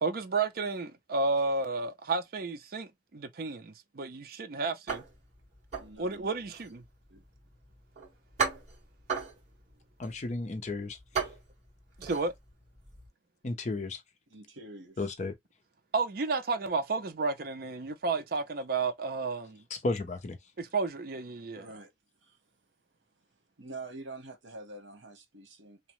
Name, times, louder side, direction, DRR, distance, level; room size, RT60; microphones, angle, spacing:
voice 1, 0.0-5.0 6.0-6.8 12.0-12.3 15.9-19.6 20.6-21.6, right 3 dB, 50° right, 0.5 m, -32 dB
sound 1, 4.9-13.1, right 6 dB, 35° right, 1.7 m, -38 dB
voice 2, 5.8-6.3 7.1-7.2 14.3-15.1 21.6-21.9 22.2-22.4 23.6-25.8, right 2 dB, 85° right, 1.0 m, -46 dB
voice 3, 10.0-11.0 13.4-14.0 15.0-15.3 19.7-20.4, left 2 dB, 40° left, 0.5 m, -33 dB
2.8 x 2.1 x 2.9 m
head